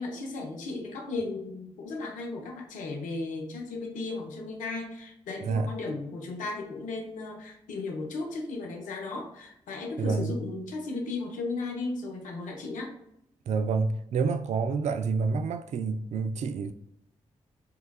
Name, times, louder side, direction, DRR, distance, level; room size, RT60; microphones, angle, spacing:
voice 1, 0.0-12.9, left 3 dB, 75° left, 0.8 m, -35 dB
voice 2, 5.4-5.7 10.0-10.3 13.5-16.7, right 4 dB, 60° right, 0.4 m, -28 dB
6.7 x 2.3 x 2.3 m
hypercardioid pair, 40°, 13 cm